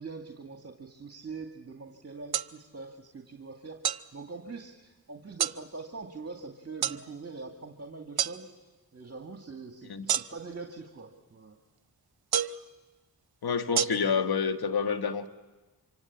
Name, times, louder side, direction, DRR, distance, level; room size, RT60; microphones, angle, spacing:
voice 1, 0.0-8.5 8.9-11.6, right 4 dB, 40° right, 2.2 m, -43 dB
sound 1, 2.3-2.5 3.8-4.0 5.4-5.6 6.8-7.0 8.2-8.4 10.1-10.5 12.3-12.6 13.8-13.9, right 9 dB, 70° right, 0.8 m, -28 dB
voice 2, 13.4-15.3, left 6 dB, 70° left, 1.6 m, -28 dB
26.0 x 24.5 x 8.7 m
cardioid pair, 55°, 39 cm